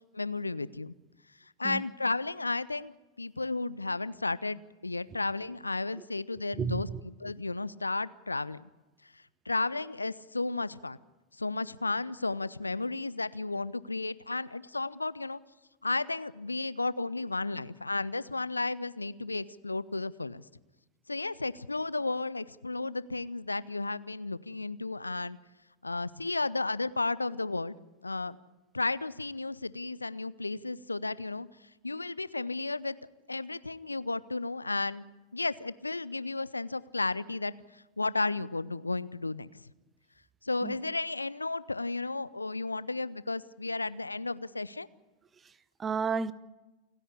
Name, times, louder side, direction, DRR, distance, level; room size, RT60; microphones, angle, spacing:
voice 1, 0.1-0.9 1.6-6.9 7.2-8.6 9.0-9.1 9.5-11.0 11.4-15.4 15.8-20.4 21.1-25.4 25.8-27.7 28.0-28.4 28.7-31.5 31.8-33.0 33.3-35.1 35.3-39.5 40.4-44.9, left 3 dB, 80° left, 0.6 m, -33 dB
voice 2, 6.5-7.0 40.6-40.8 45.3-46.3, right 5 dB, 20° right, 0.8 m, -33 dB
28.5 x 10.0 x 9.9 m
figure-of-eight pair, 90°, 0 cm